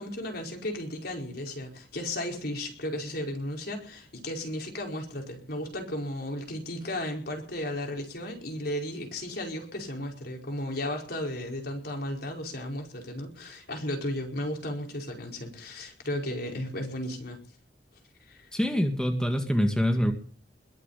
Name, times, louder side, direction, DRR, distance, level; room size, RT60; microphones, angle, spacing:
voice 1, 0.0-17.4 18.3-18.5, left 1 dB, 65° left, 2 dB, 4.9 m, -34 dB
voice 2, 18.5-20.1, equal, 5° left, 4 dB, 1.9 m, -25 dB
21.5 x 7.6 x 8.4 m, 0.43 s
head